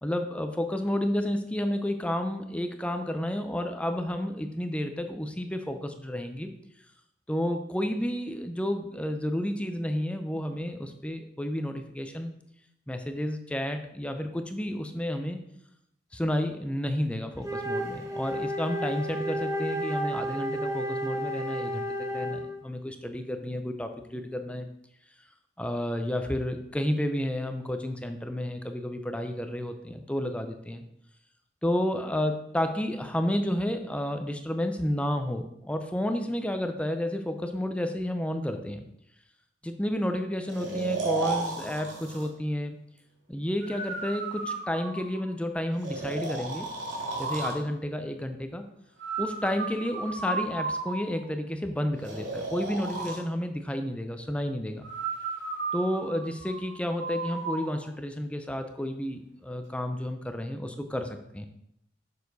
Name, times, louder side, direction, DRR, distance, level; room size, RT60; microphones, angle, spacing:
voice 1, 0.0-6.5 7.3-12.3 12.9-15.4 16.1-24.7 25.6-30.8 31.6-38.8 39.6-42.8 43.3-46.7 47.2-48.7 49.2-54.9 55.7-61.5, left 1 dB, 5° left, 7 dB, 0.5 m, -31 dB
Wind instrument woodwind instrument, 17.4-22.6, equal, 15° right, 0.9 m, -32 dB
Breathing, 40.5-42.3 43.6-45.3 45.8-47.6 49.0-51.3 52.0-53.2 54.8-57.7, right 3 dB, 75° right, 2.2 m, -34 dB
6.8 x 6.6 x 4.0 m, 0.79 s
head